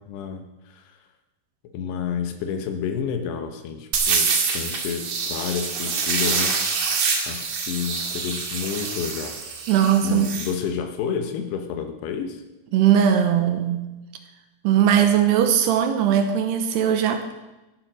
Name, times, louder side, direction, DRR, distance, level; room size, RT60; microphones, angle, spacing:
voice 1, 0.1-0.9 1.7-6.6 7.3-9.4 10.0-12.4, left 7 dB, 75° left, 7 dB, 3.1 m, -30 dB
sound 1, 3.9-10.5, right 5 dB, 50° right, 2.8 m, -26 dB
voice 2, 9.7-10.3 12.7-13.9 14.6-17.3, right 9 dB, 75° right, 7 dB, 2.9 m, -19 dB
14.5 x 11.0 x 6.2 m, 1.0 s
omnidirectional pair, 5.1 m